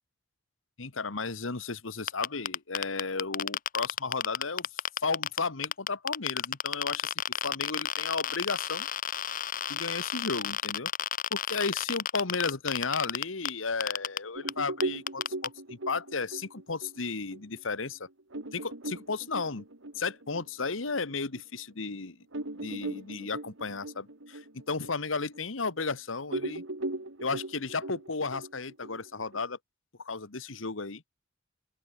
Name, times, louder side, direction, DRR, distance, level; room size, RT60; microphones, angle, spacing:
voice 1, 0.8-7.1 7.4-8.9 9.7-10.9 11.3-18.1 18.5-19.6 20.0-22.2 22.5-26.6 27.2-29.6 30.0-31.0, left 4 dB, 85° left, 1.5 m, -34 dB
sound 1, 2.1-5.4 5.6-13.5 13.8-14.2 14.5-14.6 14.8-15.5, left 9 dB, 45° left, 0.7 m, -31 dB
sound 2, 14.3-21.4 21.8-21.9 22.3-25.9 26.3-29.4, right 2 dB, 85° right, 2.6 m, -39 dB
open air
head